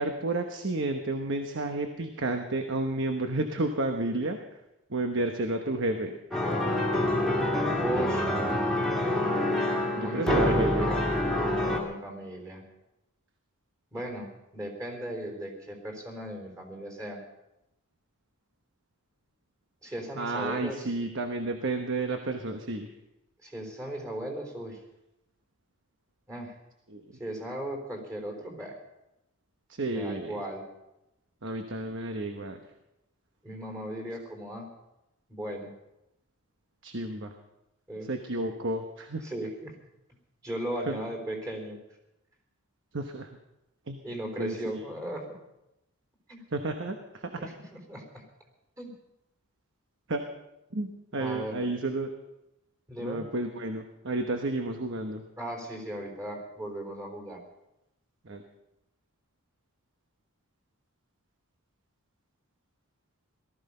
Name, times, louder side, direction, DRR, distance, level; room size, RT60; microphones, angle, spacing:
voice 1, 0.0-4.4 4.9-6.2 9.9-10.9 20.2-22.9 26.9-27.0 29.7-30.4 31.4-32.6 36.8-37.3 38.1-39.3 40.9-41.0 42.9-43.3 43.9-44.0 44.4-44.8 46.5-47.5 50.1-50.2 50.7-52.1 53.0-55.2 58.2-58.4, right 2 dB, 55° right, 5 dB, 1.1 m, -31 dB
sound 1, 6.3-11.8, left 1 dB, ahead, 2.1 m, -26 dB
voice 2, 7.8-8.3 10.0-11.0 11.6-12.6 13.9-17.2 19.8-20.9 23.4-24.8 26.3-26.5 27.2-28.8 29.9-30.6 33.4-34.7 35.3-35.7 37.9-38.1 39.2-39.8 40.4-41.8 44.0-45.4 46.3-46.4 47.4-47.5 47.9-48.2 48.8-48.9 51.1-51.7 52.9-53.3 55.4-57.4, right 1 dB, 15° right, 2 dB, 3.8 m, -37 dB
18.5 x 14.0 x 5.5 m, 0.91 s
head